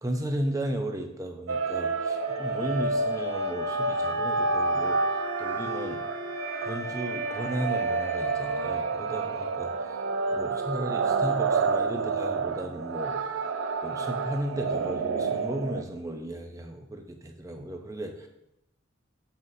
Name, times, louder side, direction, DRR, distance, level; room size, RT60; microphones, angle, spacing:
voice 1, 0.0-6.0 6.6-10.0 10.3-13.2 13.8-18.3, right 1 dB, 15° right, 4 dB, 0.6 m, -35 dB
sound 1, 1.5-15.8, right 4 dB, 80° right, 0.4 m, -29 dB
Wind instrument woodwind instrument, 2.2-8.7, left 4 dB, 40° left, 1.4 m, -38 dB
7.9 x 5.7 x 2.7 m, 0.84 s
head